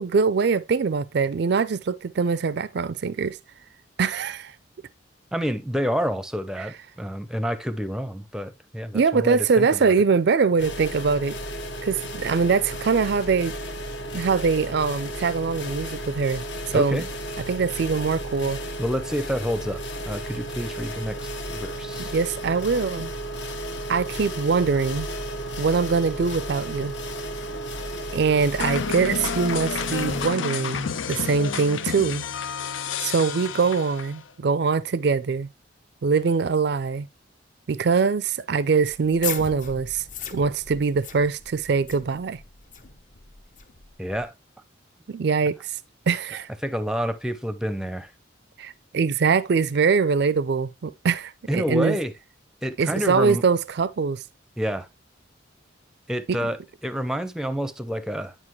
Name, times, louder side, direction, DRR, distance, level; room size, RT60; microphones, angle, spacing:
voice 1, 0.0-3.4 4.0-4.5 8.9-11.4 11.8-13.6 14.1-17.0 17.5-18.6 22.1-23.1 23.9-25.1 25.6-26.9 28.1-32.2 33.0-35.5 36.0-37.1 37.7-40.0 40.3-42.4 45.1-45.8 46.1-46.5 48.6-52.0 52.8-54.2 56.3-56.5, right 5 dB, 55° right, 0.4 m, -23 dB
voice 2, 5.3-9.9 16.7-17.1 18.8-22.1 44.0-44.3 46.6-48.1 51.5-52.1 52.6-53.4 54.6-54.9 56.1-58.3, equal, 5° right, 0.6 m, -28 dB
sound 1, 10.6-30.3, right 1 dB, 65° left, 1.3 m, -33 dB
sound 2, 28.6-34.3, left 6 dB, 85° left, 0.6 m, -30 dB
sound 3, 38.9-44.3, left 6 dB, 40° left, 0.7 m, -38 dB
9.8 x 5.0 x 3.1 m
head